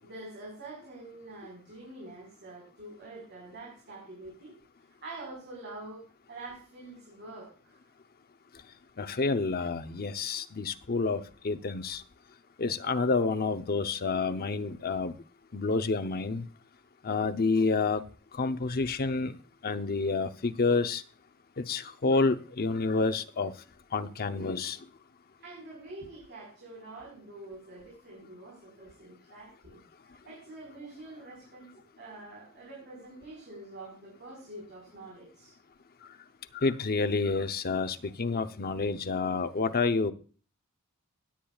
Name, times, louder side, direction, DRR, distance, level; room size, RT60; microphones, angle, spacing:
voice 1, 0.0-4.5 5.0-7.8 25.4-29.8 30.2-35.5, right 2 dB, 50° right, -3 dB, 4.5 m, -46 dB
voice 2, 9.0-12.0 12.6-15.2 15.5-16.4 17.0-18.0 18.4-19.4 19.6-21.0 21.6-23.5 23.9-24.8 36.5-40.1, left 4 dB, 45° left, 9 dB, 0.7 m, -29 dB
17.5 x 8.7 x 2.4 m, 0.38 s
head